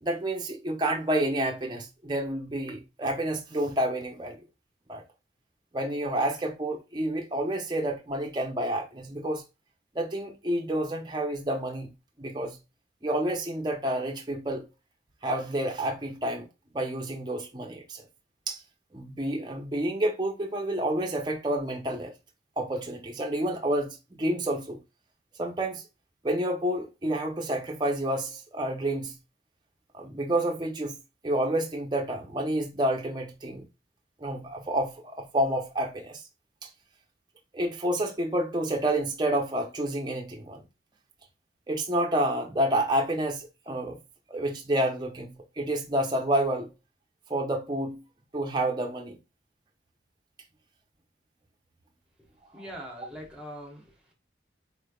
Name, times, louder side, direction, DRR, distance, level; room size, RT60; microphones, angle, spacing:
voice 1, 0.0-4.4 4.9-5.0 5.7-9.4 9.9-11.9 12.2-12.6 13.0-14.7 15.2-16.5 16.7-18.0 18.5-18.6 18.9-22.1 22.6-24.8 25.4-25.8 26.2-29.1 29.9-31.0 31.2-33.6 34.2-36.2 36.6-36.7 37.5-40.6 41.7-44.0 44.3-46.7 47.3-48.0 48.3-49.2, right 1 dB, 25° right, 0.7 m, -29 dB
voice 2, 52.5-54.1, equal, 5° right, 1.1 m, -42 dB
4.5 x 3.3 x 2.3 m
head